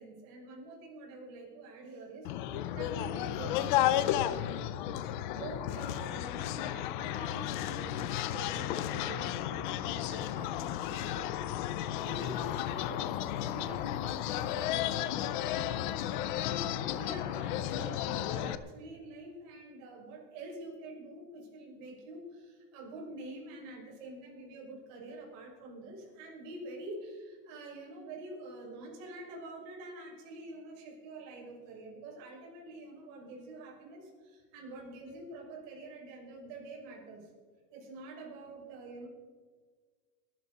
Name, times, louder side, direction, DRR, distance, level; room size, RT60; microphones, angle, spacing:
voice 1, 0.0-4.5 5.3-37.3 37.7-39.1, right 2 dB, 50° right, -2 dB, 5.9 m, -47 dB
sound 1, 2.2-18.6, left 12 dB, 35° left, 0.4 m, -33 dB
21.5 x 12.0 x 4.1 m, 1.5 s
supercardioid pair, 160°, 50 cm